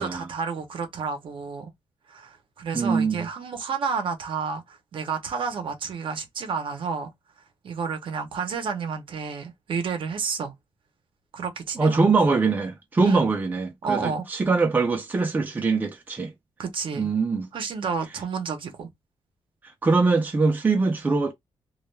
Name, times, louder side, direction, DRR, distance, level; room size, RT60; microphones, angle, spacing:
voice 1, 0.0-1.7 2.1-7.1 7.6-10.5 11.3-12.0 13.0-13.2 13.8-14.2 16.6-17.1 17.5-18.9, right 5 dB, 60° right, 0.7 m, -30 dB
voice 2, 2.7-3.3 11.8-16.3 16.9-17.5 19.8-21.3, right 4 dB, 20° right, 0.5 m, -23 dB
2.3 x 2.1 x 3.1 m
wide cardioid pair, 165°, 10 cm